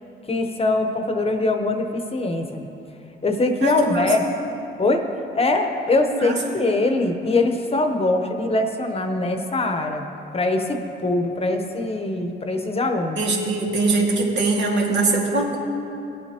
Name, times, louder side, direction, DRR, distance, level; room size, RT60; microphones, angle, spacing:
voice 1, 0.3-2.7 3.2-4.2 4.8-5.1 5.3-10.1 10.3-13.2, left 2 dB, 30° left, 5 dB, 0.9 m, -22 dB
voice 2, 3.6-4.1 6.1-6.4 13.2-15.6, right 3 dB, 65° right, -2 dB, 2.1 m, -22 dB
17.5 x 8.3 x 2.9 m, 2.8 s
cardioid pair, 90°, 20 cm